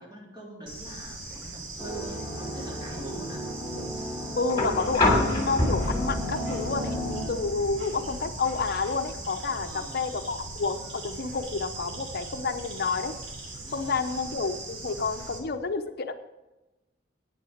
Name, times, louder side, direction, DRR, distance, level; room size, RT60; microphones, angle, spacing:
voice 1, 0.0-3.4 9.6-10.2 13.6-14.3, right 2 dB, 25° right, -2 dB, 3.2 m, -44 dB
Bird / Insect, 0.7-15.4, right 2 dB, 85° right, 2.9 m, -40 dB
sound 1, 1.8-7.2, equal, 10° right, 3.8 m, -35 dB
voice 2, 4.4-13.1 13.7-16.1, left 4 dB, 55° left, 8 dB, 0.7 m, -30 dB
sound 2, 4.5-12.5 13.9-14.0, left 2 dB, 20° left, 2.9 m, -30 dB
10.0 x 9.4 x 5.0 m, 1.0 s
head